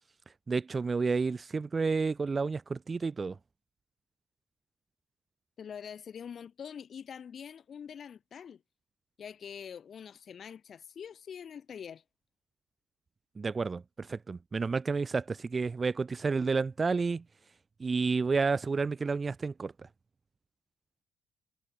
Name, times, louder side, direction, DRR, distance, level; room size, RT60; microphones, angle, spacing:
voice 1, 0.5-3.4 13.4-17.2 17.8-19.7, right 4 dB, 30° right, 0.5 m, -30 dB
voice 2, 5.6-8.6 9.2-12.0, left 7 dB, 50° left, 4.9 m, -44 dB
cardioid pair, 95°, 0 cm